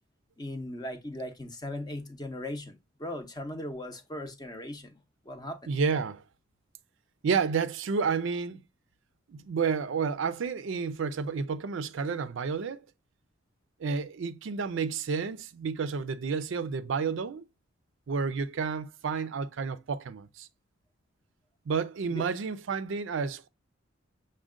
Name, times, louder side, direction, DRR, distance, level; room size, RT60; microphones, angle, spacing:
voice 1, 0.4-5.0 5.3-5.7 22.1-22.2, left 1 dB, 20° left, 0.6 m, -38 dB
voice 2, 5.7-6.2 7.2-8.6 9.3-12.8 13.8-17.5 18.1-20.5 21.7-23.5, right 5 dB, 70° right, 0.4 m, -30 dB
6.2 x 2.1 x 3.6 m
head